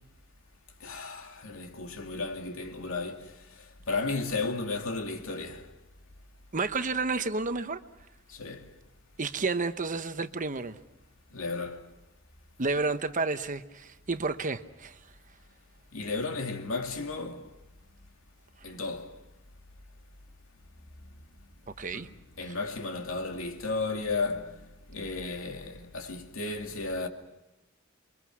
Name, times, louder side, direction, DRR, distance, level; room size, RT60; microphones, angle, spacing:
voice 1, 0.8-5.7 8.3-8.7 11.3-11.9 15.9-17.5 18.6-19.2 21.9-24.6 24.9-27.1, left 3 dB, 75° left, 2.5 m, -34 dB
voice 2, 6.5-7.8 9.2-10.8 12.6-15.0 21.8-22.1 22.5-22.6, right 3 dB, 40° right, 1.0 m, -31 dB
28.5 x 23.5 x 6.2 m
head